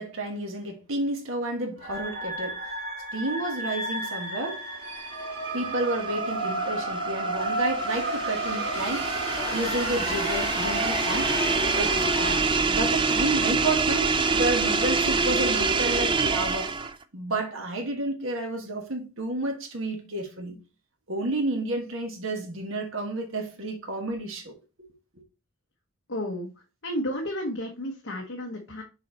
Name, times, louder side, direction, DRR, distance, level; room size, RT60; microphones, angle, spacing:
voice 1, 0.0-2.6 3.1-4.6 5.5-9.1 9.5-11.3 11.7-12.4 12.7-16.7 17.1-20.6 21.1-24.5, right 2 dB, 65° right, 1.5 m, -31 dB
sound 1, 1.8-9.9, right 2 dB, 45° right, 2.0 m, -32 dB
sound 2, 5.1-17.0, right 4 dB, 20° right, 0.4 m, -26 dB
sound 3, 7.7-12.6, left 2 dB, 30° left, 2.8 m, -33 dB
voice 2, 26.1-26.5 26.8-28.8, equal, 60° left, 1.1 m, -32 dB
6.3 x 4.3 x 4.1 m
head